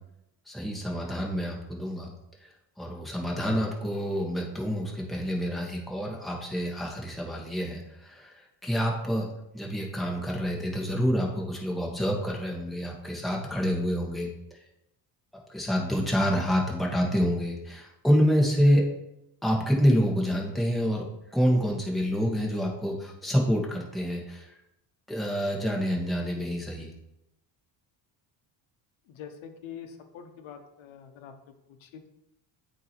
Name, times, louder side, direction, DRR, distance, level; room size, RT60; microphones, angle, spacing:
voice 1, 0.5-2.1 2.4-2.5 2.8-9.3 9.5-14.3 15.5-18.8 19.4-21.0 21.3-24.5 25.1-26.9, equal, ahead, -2 dB, 1.5 m, -27 dB
voice 2, 29.0-32.1, left 8 dB, 75° left, 7 dB, 1.0 m, -45 dB
8.1 x 3.1 x 4.5 m, 0.84 s
supercardioid pair, 75°, 47 cm